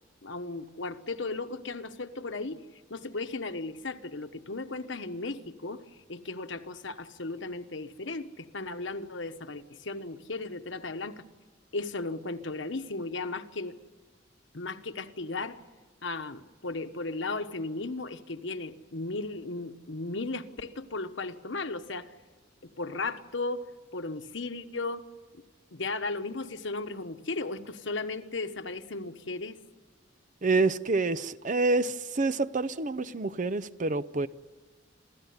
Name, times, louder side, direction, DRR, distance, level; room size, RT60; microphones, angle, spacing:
voice 1, 0.2-2.6 2.9-11.2 11.7-13.8 14.5-15.6 16.0-22.1 22.6-23.6 23.9-25.0 25.7-29.6, left 3 dB, 65° left, 1.2 m, -36 dB
voice 2, 30.4-34.3, right 3 dB, 40° right, 0.6 m, -27 dB
27.5 x 14.0 x 9.6 m
head